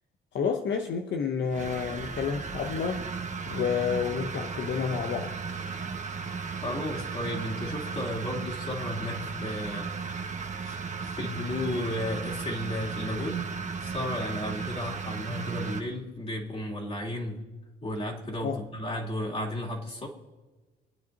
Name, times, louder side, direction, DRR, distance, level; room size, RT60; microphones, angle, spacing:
voice 1, 0.3-3.1 3.5-5.4 18.4-18.6, left 6 dB, 65° left, 0.9 m, -30 dB
sound 1, 1.5-15.8, right 5 dB, 35° right, 1.3 m, -35 dB
voice 2, 6.5-9.9 10.6-17.4 17.8-20.1, left 1 dB, 30° left, 3.0 m, -34 dB
26.5 x 9.3 x 2.9 m
cardioid pair, 90°, 20 cm